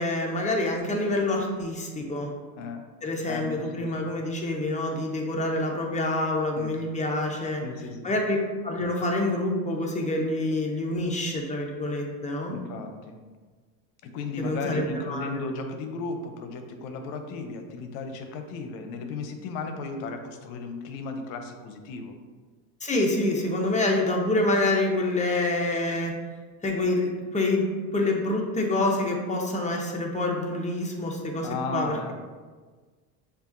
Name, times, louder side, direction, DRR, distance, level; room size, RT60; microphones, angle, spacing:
voice 1, 0.0-2.3 3.0-7.6 8.0-8.4 8.6-12.6 14.4-15.4 22.8-26.1 26.6-32.1, left 2 dB, 15° left, 0 dB, 0.8 m, -27 dB
voice 2, 3.3-4.2 6.5-6.8 7.6-8.1 12.5-13.2 14.0-22.2 31.4-32.1, left 3 dB, 70° left, 6 dB, 0.7 m, -35 dB
6.7 x 2.5 x 2.6 m, 1.4 s
supercardioid pair, 90°, 44 cm